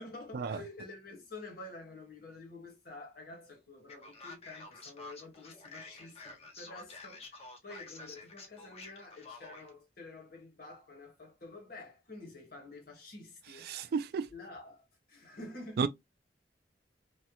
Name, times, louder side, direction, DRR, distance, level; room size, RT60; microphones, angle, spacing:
voice 1, 0.0-13.9 14.3-15.9, left 2 dB, 60° left, 1.3 m, -49 dB
Male speech man speaking, 3.9-9.7, left 3 dB, 35° left, 0.8 m, -49 dB
voice 2, 13.6-14.3 15.8-15.9, right 5 dB, 60° right, 0.3 m, -32 dB
3.2 x 2.1 x 2.8 m
head